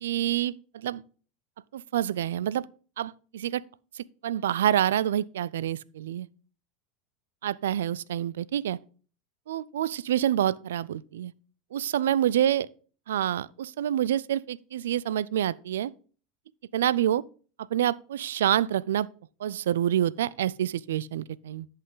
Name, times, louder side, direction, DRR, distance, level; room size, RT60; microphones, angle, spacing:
voice 1, 0.0-1.0 1.7-2.7 3.0-3.6 4.0-6.3 7.4-8.8 9.5-11.3 11.7-12.7 13.1-15.9 16.7-17.2 17.7-19.1 19.4-21.7, right 11 dB, 85° right, 0.3 m, -27 dB
10.5 x 5.6 x 3.8 m
hypercardioid pair, 105°, 0 cm